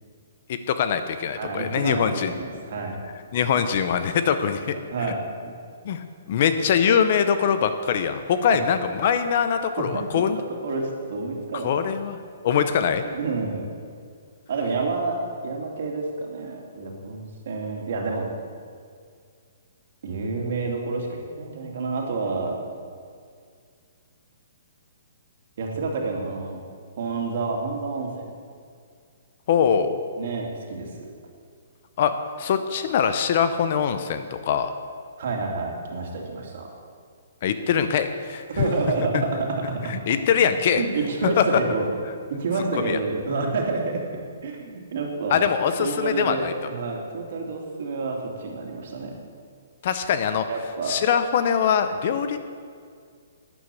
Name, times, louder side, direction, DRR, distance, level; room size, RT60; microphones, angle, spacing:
voice 1, 0.5-2.3 3.3-4.7 5.8-10.4 11.6-12.2 12.4-13.0 29.5-30.0 32.0-34.8 37.4-38.4 39.9-40.8 41.4-41.5 42.8-43.0 45.3-46.5 49.8-50.5 50.9-52.4, left 7 dB, 35° left, 10 dB, 0.6 m, -23 dB
voice 2, 1.4-3.0 4.7-5.5 8.5-8.6 9.8-11.8 13.1-13.6 14.5-15.2 15.4-18.3 20.0-22.5 25.6-26.6 27.0-28.3 30.2-31.1 35.2-36.7 38.6-39.3 40.4-41.9 42.4-44.0 44.4-45.5 45.8-49.1 50.5-50.9, right 3 dB, 45° right, 0 dB, 2.7 m, -29 dB
12.5 x 9.6 x 8.4 m, 2.2 s
hypercardioid pair, 180°, 0 cm